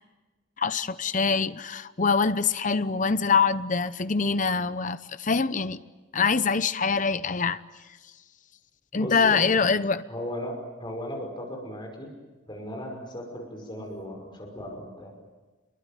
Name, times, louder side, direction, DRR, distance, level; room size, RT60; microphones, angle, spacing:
voice 1, 0.6-5.8 6.1-7.6 8.9-10.0, left 5 dB, 40° left, 0.8 m, -24 dB
voice 2, 8.9-9.5 10.1-12.1 12.5-15.1, equal, 25° left, 5.9 m, -36 dB
28.0 x 22.5 x 9.3 m
head